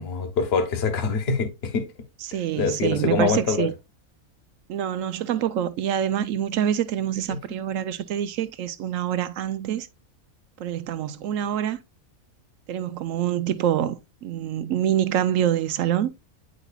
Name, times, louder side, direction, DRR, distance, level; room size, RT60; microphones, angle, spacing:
voice 1, 0.0-1.9 2.6-3.7 7.3-7.4, left 4 dB, 50° left, 1.2 m, -24 dB
voice 2, 2.2-3.7 4.7-9.9 10.6-11.8 12.7-16.1, right 10 dB, 70° right, 0.9 m, -26 dB
9.2 x 4.9 x 2.2 m
omnidirectional pair, 1.5 m